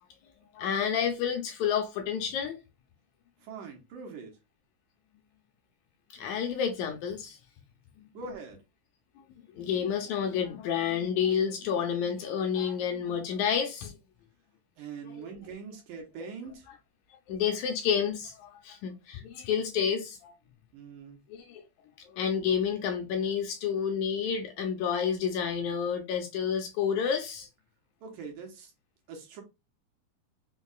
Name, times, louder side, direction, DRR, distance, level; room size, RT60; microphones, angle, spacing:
voice 1, 0.5-2.6 6.1-7.4 8.0-8.1 9.5-14.0 15.0-15.3 17.3-20.3 21.3-21.6 22.1-27.5, left 7 dB, 75° left, 1.8 m, -30 dB
voice 2, 3.4-4.4 8.1-8.6 14.8-16.7 20.7-21.2 28.0-28.7 29.1-29.4, right 4 dB, 75° right, 2.3 m, -42 dB
5.3 x 2.3 x 2.3 m
omnidirectional pair, 3.7 m